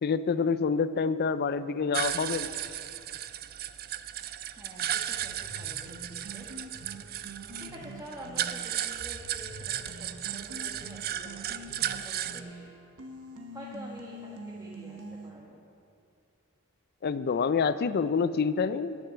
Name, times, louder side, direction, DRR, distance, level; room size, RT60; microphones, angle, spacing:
voice 1, 0.0-2.5 17.0-19.0, left 5 dB, 45° left, 14 dB, 0.4 m, -27 dB
sound 1, 1.9-12.4, right 11 dB, 45° right, 0.4 m, -35 dB
voice 2, 4.6-6.5 7.6-12.7 13.5-15.6, equal, 15° right, -5 dB, 1.2 m, -47 dB
sound 2, 5.2-15.3, right 1 dB, 80° right, 1.3 m, -45 dB
11.0 x 6.8 x 8.3 m, 2.5 s
head